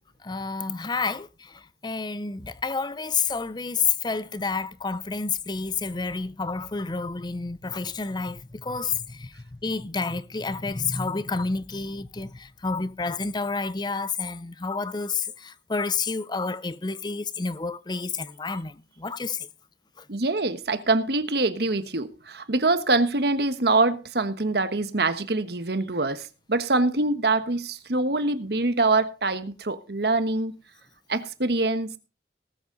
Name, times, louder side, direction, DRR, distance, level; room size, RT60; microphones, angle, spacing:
voice 1, 0.2-9.3 9.6-19.5 20.0-20.1, left 4 dB, 25° left, 0.6 m, -29 dB
voice 2, 20.1-30.6 31.1-32.0, right 2 dB, 65° right, 1.3 m, -24 dB
19.0 x 8.0 x 3.9 m
head